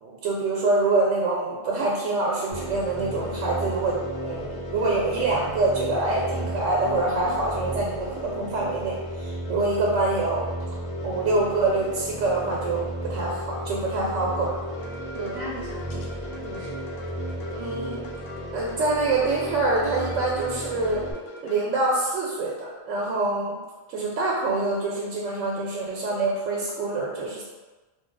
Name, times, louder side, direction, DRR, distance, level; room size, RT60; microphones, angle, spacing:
voice 1, 0.0-10.5 11.0-14.5 17.5-18.1 18.5-21.0 21.4-23.6 23.9-27.4, right 2 dB, 90° right, -3 dB, 1.0 m, -25 dB
sound 1, 2.5-21.1, equal, 45° left, 1.1 m, -34 dB
sound 2, 14.7-21.6, left 1 dB, 85° left, 1.0 m, -41 dB
voice 2, 15.1-16.9, right 2 dB, 40° right, -7 dB, 0.3 m, -38 dB
2.7 x 2.3 x 3.8 m, 1.2 s
omnidirectional pair, 1.3 m